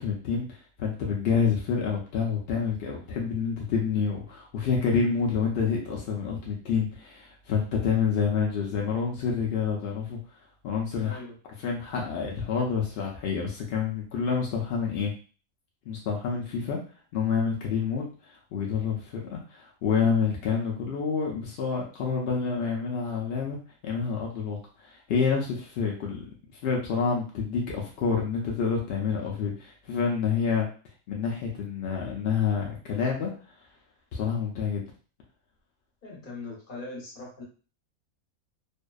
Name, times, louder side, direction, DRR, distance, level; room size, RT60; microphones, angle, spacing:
voice 1, 0.0-10.2 10.6-11.2 11.6-15.1 15.9-16.8 17.1-26.2 26.6-30.7 31.1-33.3 34.1-34.8, left 6 dB, 75° left, -1 dB, 0.5 m, -28 dB
voice 2, 11.0-11.4 36.0-37.4, left 3 dB, 40° left, -4 dB, 0.9 m, -40 dB
2.5 x 2.1 x 2.3 m, 0.37 s
omnidirectional pair, 1.6 m